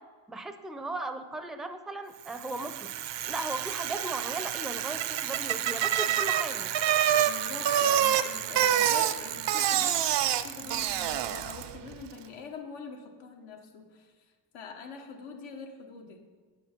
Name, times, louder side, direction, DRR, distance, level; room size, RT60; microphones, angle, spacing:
voice 1, 0.3-2.9 3.3-6.7, right 2 dB, ahead, 8 dB, 0.4 m, -37 dB
Bicycle, 2.3-11.8, right 10 dB, 65° right, 0.5 m, -28 dB
voice 2, 7.1-10.0 10.4-14.1 14.5-16.2, left 5 dB, 90° left, 1 dB, 1.3 m, -44 dB
8.7 x 7.7 x 4.4 m, 1.5 s
cardioid pair, 130°, 45 cm